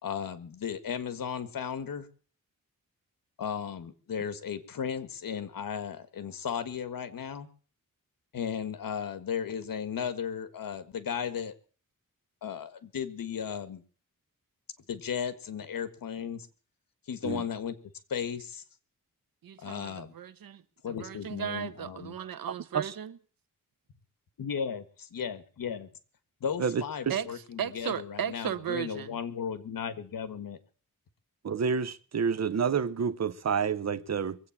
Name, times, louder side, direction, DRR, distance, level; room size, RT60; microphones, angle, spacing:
voice 1, 0.0-2.1 3.4-7.5 8.3-11.5 12.4-13.8 14.9-16.5 17.1-17.7 18.1-18.6 19.6-20.1 20.8-22.2 24.4-24.8 25.1-25.9 26.4-30.6, left 7 dB, 75° left, 1.6 m, -35 dB
voice 2, 19.4-23.1 27.1-27.3 27.6-29.2, right 9 dB, 85° right, 1.2 m, -36 dB
voice 3, 22.5-23.0 26.6-27.2 31.4-34.4, right 6 dB, 50° right, 0.9 m, -29 dB
22.0 x 8.3 x 7.2 m
wide cardioid pair, 125°, 34 cm